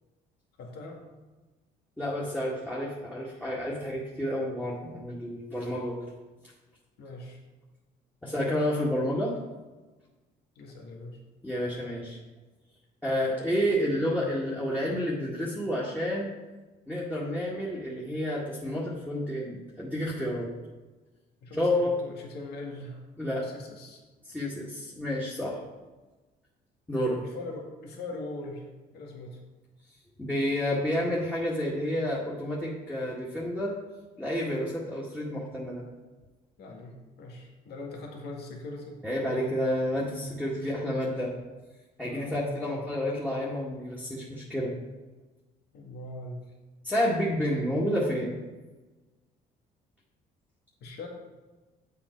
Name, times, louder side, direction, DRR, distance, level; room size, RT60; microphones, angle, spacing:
voice 1, 0.6-1.0 7.0-7.4 10.6-11.2 21.4-23.0 23.3-24.0 27.2-29.4 36.6-39.0 40.6-40.8 42.0-42.8 45.7-46.4 50.8-51.1, left 2 dB, 75° left, 0 dB, 2.1 m, -41 dB
voice 2, 2.0-6.0 8.2-9.4 11.4-12.2 13.0-16.3 16.9-20.5 21.5-21.9 23.2-23.5 24.2-25.6 26.9-27.2 30.2-33.8 34.2-35.8 39.0-41.3 42.0-44.7 46.8-48.4, equal, 5° left, -7 dB, 2.0 m, -30 dB
8.9 x 7.7 x 4.6 m, 1.2 s
cardioid pair, 110°, 17 cm